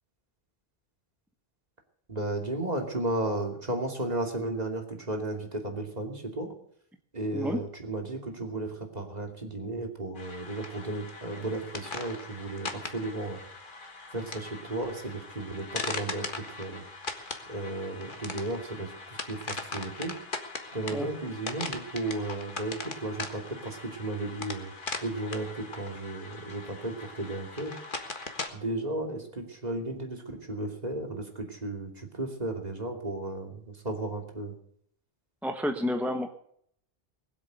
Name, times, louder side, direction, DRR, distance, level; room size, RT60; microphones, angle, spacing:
voice 1, 2.1-6.5 7.1-13.4 14.1-16.8 17.5-20.2 20.7-24.7 25.0-27.8 28.5-34.6, right 2 dB, 40° right, 2 dB, 2.9 m, -34 dB
sound 1, 10.2-28.5, left 3 dB, 55° left, 1.8 m, -40 dB
voice 2, 35.4-36.3, left 1 dB, ahead, 5 dB, 1.0 m, -30 dB
20.5 x 8.1 x 8.0 m, 0.68 s
omnidirectional pair, 1.1 m